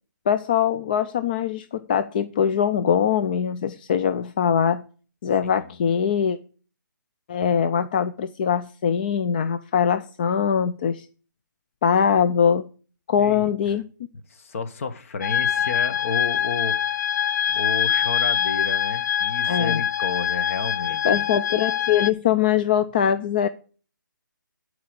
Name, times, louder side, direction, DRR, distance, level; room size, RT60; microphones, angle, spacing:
voice 1, 0.3-4.8 5.2-6.4 7.3-11.1 11.8-12.7 13.1-13.8 19.4-19.8 21.0-23.5, left 8 dB, 25° left, 11 dB, 0.4 m, -22 dB
voice 2, 13.2-13.5 14.3-17.0 17.5-21.3, left 4 dB, 40° left, 10 dB, 1.2 m, -31 dB
sound 1, 15.2-22.1, left 9 dB, 65° left, 0.7 m, -24 dB
12.0 x 4.9 x 8.0 m, 0.40 s
hypercardioid pair, 160°, 11 cm